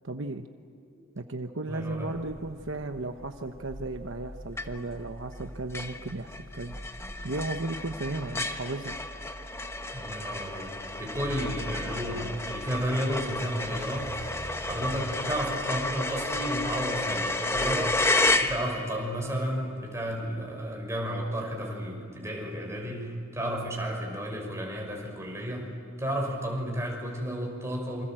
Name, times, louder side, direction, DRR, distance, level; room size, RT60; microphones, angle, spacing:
voice 1, 0.0-0.4 1.1-6.7 7.2-9.0, right 2 dB, 65° right, 6 dB, 1.1 m, -35 dB
voice 2, 1.7-2.2 9.9-10.7 11.0-14.4 14.6-25.7 26.0-28.1, equal, 15° right, 0 dB, 6.0 m, -32 dB
sound 1, 1.9-18.5, equal, 90° right, 3.6 m, -45 dB
sound 2, 4.6-5.0 5.4-5.5 5.7-19.0, left 2 dB, 15° left, 1.3 m, -31 dB
27.5 x 25.5 x 7.8 m, 2.3 s
head